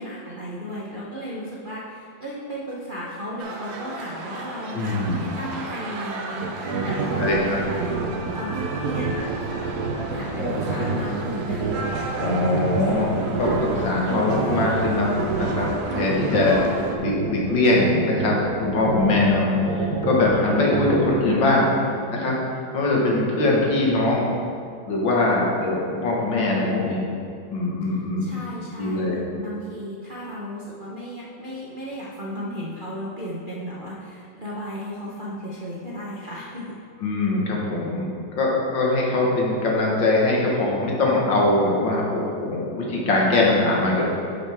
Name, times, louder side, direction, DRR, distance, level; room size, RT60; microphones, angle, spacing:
voice 1, 0.0-7.9 8.3-9.7 10.1-11.7 28.2-36.8, equal, 40° right, -7 dB, 0.8 m, -35 dB
sound 1, 3.4-17.0, right 3 dB, 85° right, 1.6 m, -34 dB
voice 2, 4.7-5.3 7.2-7.6 10.4-10.5 12.2-16.6 17.0-21.7 22.1-22.4 22.7-24.3 24.8-27.0 27.5-28.3 28.8-29.2 37.0-38.1 38.4-44.0, left 2 dB, 75° left, -3 dB, 2.1 m, -22 dB
sound 2, 6.4-21.1, right 4 dB, 60° right, 1.1 m, -27 dB
10.5 x 6.4 x 3.5 m, 2.4 s
omnidirectional pair, 2.0 m